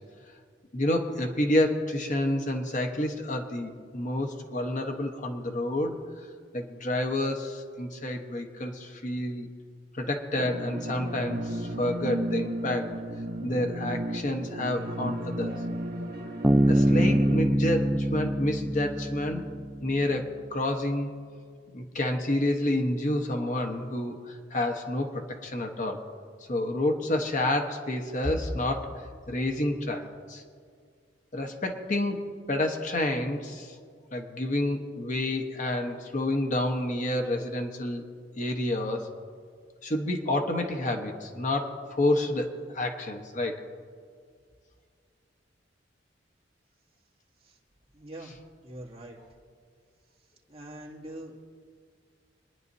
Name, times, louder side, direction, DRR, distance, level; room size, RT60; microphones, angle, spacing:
voice 1, 0.7-6.0 6.5-9.5 9.9-12.9 13.4-15.5 16.7-19.5 19.8-21.1 21.7-26.0 26.5-30.4 31.3-33.7 34.1-38.0 38.4-39.1 39.8-42.5 42.7-43.6, left 1 dB, 45° left, 3 dB, 1.1 m, -29 dB
sound 1, 10.4-17.4, right 1 dB, 55° right, 1.2 m, -34 dB
Bass guitar, 16.4-19.9, equal, 5° right, 0.3 m, -24 dB
voice 2, 47.9-48.3 48.6-49.2 50.5-51.4, right 1 dB, 35° right, -3 dB, 2.3 m, -43 dB
26.0 x 10.5 x 2.7 m, 2.1 s
head